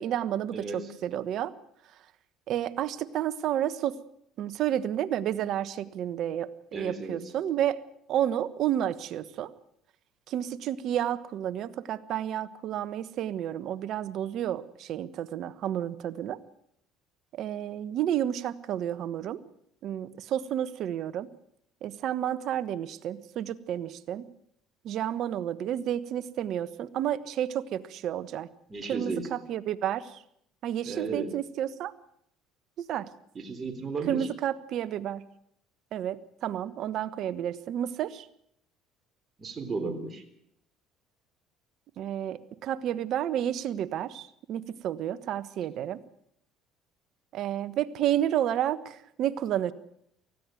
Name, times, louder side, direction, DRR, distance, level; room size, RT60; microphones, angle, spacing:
voice 1, 0.0-1.5 2.5-4.0 4.4-7.8 8.1-9.5 10.3-16.4 17.3-19.4 19.8-21.3 21.8-24.2 24.8-28.5 28.9-30.2 30.6-31.9 32.8-33.1 34.1-35.2 35.9-38.3 42.0-46.0 47.3-49.7, right 11 dB, 60° right, 15 dB, 1.2 m, -31 dB
voice 2, 0.5-0.9 6.7-7.2 28.7-29.3 30.8-31.3 33.4-34.3 39.4-40.2, right 4 dB, 35° right, 5 dB, 3.7 m, -34 dB
19.5 x 15.0 x 9.1 m, 0.72 s
supercardioid pair, 80°, 0 cm